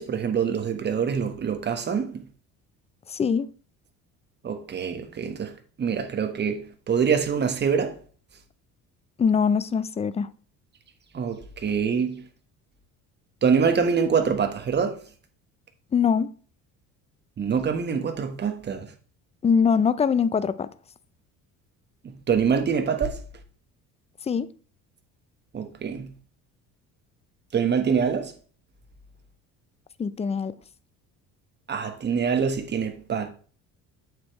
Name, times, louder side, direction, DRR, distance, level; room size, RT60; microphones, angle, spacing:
voice 1, 0.0-2.3 4.4-8.0 11.1-12.3 13.4-15.0 17.4-18.9 22.0-23.2 25.5-26.1 27.5-28.3 31.7-33.3, right 6 dB, 30° right, 1.4 m, -25 dB
voice 2, 3.1-3.5 9.2-10.3 15.9-16.3 19.4-20.7 24.3-24.5 30.0-30.5, left 6 dB, 20° left, 0.5 m, -22 dB
8.5 x 6.6 x 3.2 m
cardioid pair, 120°, 33 cm